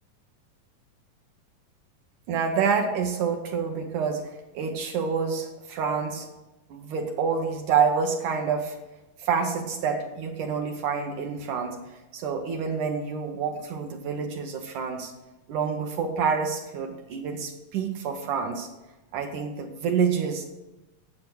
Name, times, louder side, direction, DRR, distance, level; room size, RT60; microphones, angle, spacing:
voice 1, 2.3-4.2 4.5-6.3 6.7-8.8 9.2-15.1 15.5-18.7 19.1-20.5, right 6 dB, 70° right, 3 dB, 2.2 m, -27 dB
10.5 x 7.6 x 6.2 m, 1.0 s
omnidirectional pair, 4.1 m